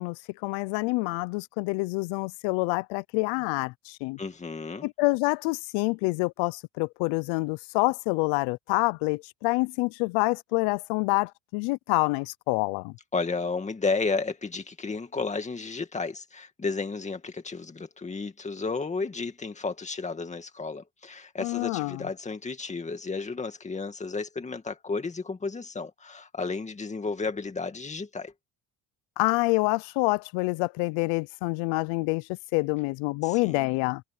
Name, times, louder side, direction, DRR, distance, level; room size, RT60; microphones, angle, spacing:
voice 1, 0.0-4.2 4.8-12.9 21.4-22.0 29.2-34.0, left 26 dB, 85° left, 0.6 m, -27 dB
voice 2, 4.2-4.9 13.1-28.3 33.2-33.7, left 4 dB, 15° left, 2.3 m, -32 dB
cardioid pair, 145°, 43 cm